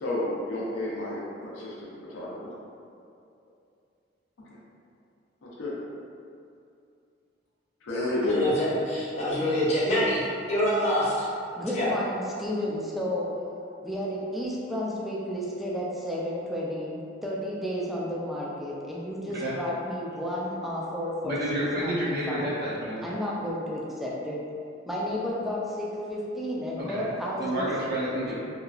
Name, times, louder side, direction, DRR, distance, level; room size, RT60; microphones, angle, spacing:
voice 1, 0.0-2.5 4.4-4.6 5.4-5.7 7.9-8.5, left 1 dB, 85° left, -6 dB, 0.5 m, -31 dB
voice 2, 8.2-11.2 11.7-11.9, equal, 35° left, -9 dB, 0.8 m, -26 dB
voice 3, 11.6-13.4 13.8-21.3 21.8-22.6 23.0-24.4 24.9-27.7, equal, ahead, -5 dB, 0.3 m, -32 dB
voice 4, 21.2-23.0 26.8-27.0 27.3-28.3, equal, 55° right, -8 dB, 0.5 m, -29 dB
2.8 x 2.3 x 2.3 m, 2.5 s
head